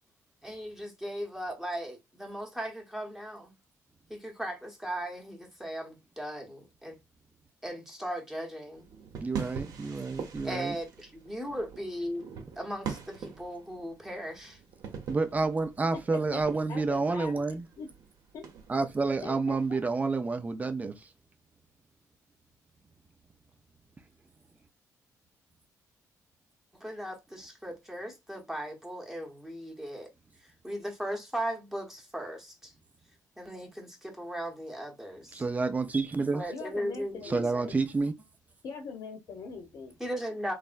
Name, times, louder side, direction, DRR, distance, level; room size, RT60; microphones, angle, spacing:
voice 1, 0.4-3.5 4.1-7.0 7.6-8.8 10.4-12.3 12.6-14.6 26.8-30.1 30.6-32.7 33.4-35.4 36.3-37.7 40.0-40.5, equal, 5° right, 1.0 m, -37 dB
sound 1, 8.7-19.8, right 6 dB, 75° right, 0.8 m, -44 dB
voice 2, 9.2-10.8 15.1-17.7 18.7-21.1 35.3-36.5 37.2-38.1, right 3 dB, 25° right, 0.6 m, -29 dB
voice 3, 15.9-16.4 16.7-17.9 18.3-18.4 19.2-19.4 36.5-37.8 38.6-39.9, left 5 dB, 65° left, 0.8 m, -42 dB
3.4 x 2.1 x 2.5 m
cardioid pair, 95°, 7 cm